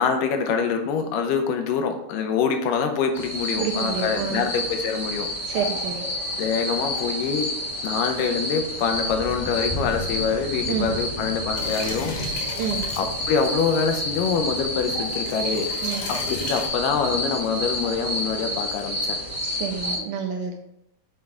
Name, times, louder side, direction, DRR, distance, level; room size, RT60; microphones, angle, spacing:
voice 1, 0.0-5.3 6.4-7.5 7.8-12.2 13.0-15.7 16.1-19.2, left 6 dB, 80° left, 5 dB, 2.3 m, -25 dB
sound 1, 3.1-20.0, left 1 dB, 20° left, 0.9 m, -29 dB
voice 2, 3.6-4.5 5.5-6.0 10.7-10.9 12.6-12.8 15.8-16.1 19.4-20.6, right 7 dB, 75° right, 3 dB, 2.0 m, -28 dB
sound 2, 11.6-16.7, left 4 dB, 65° left, 2.4 m, -37 dB
7.6 x 4.5 x 3.6 m, 0.79 s
omnidirectional pair, 4.0 m